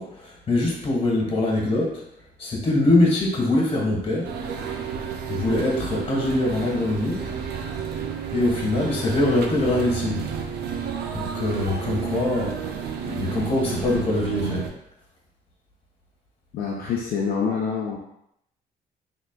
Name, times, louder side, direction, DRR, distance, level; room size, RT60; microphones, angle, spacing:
voice 1, 0.0-2.0 2.4-4.3 5.3-7.2 8.3-10.2 11.1-14.7, left 2 dB, 35° left, -3 dB, 1.5 m, -23 dB
sound 1, 4.2-14.7, right 7 dB, 85° right, 0.5 m, -31 dB
voice 2, 16.5-18.0, left 6 dB, 65° left, -3 dB, 0.6 m, -26 dB
4.3 x 3.8 x 2.3 m, 0.76 s
cardioid pair, 125°, 16 cm